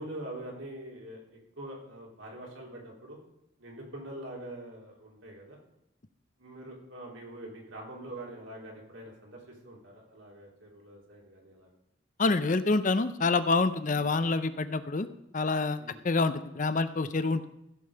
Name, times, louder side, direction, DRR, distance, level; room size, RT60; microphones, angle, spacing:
voice 1, 0.0-3.2 3.6-5.6 6.4-11.7 15.8-16.0, right 1 dB, 70° right, -1 dB, 3.4 m, -44 dB
voice 2, 12.2-15.1 15.3-15.8 16.0-17.5, left 3 dB, 40° left, 12 dB, 0.5 m, -27 dB
15.0 x 5.4 x 6.7 m, 0.84 s
head